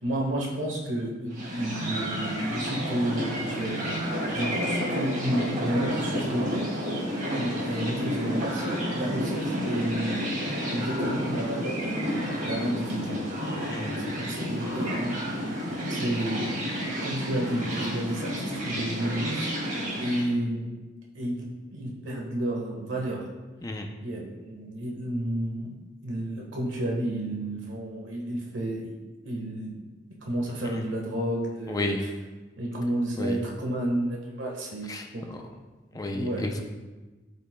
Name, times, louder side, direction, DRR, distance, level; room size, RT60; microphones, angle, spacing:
voice 1, 0.0-6.7 7.3-10.3 10.7-13.2 14.0-16.7 17.0-19.5 20.0-20.7 21.1-23.2 24.0-25.7 26.0-28.9 29.2-29.7 30.2-31.9 32.6-35.3 35.9-36.4, right 1 dB, 90° right, -1 dB, 1.4 m, -31 dB
sound 1, 1.3-20.3, equal, 45° right, 2.3 m, -31 dB
voice 2, 31.7-32.1 33.2-33.4 34.9-35.4 35.9-36.6, left 1 dB, 20° left, 2 dB, 0.5 m, -32 dB
12.5 x 5.3 x 2.2 m, 1.2 s
head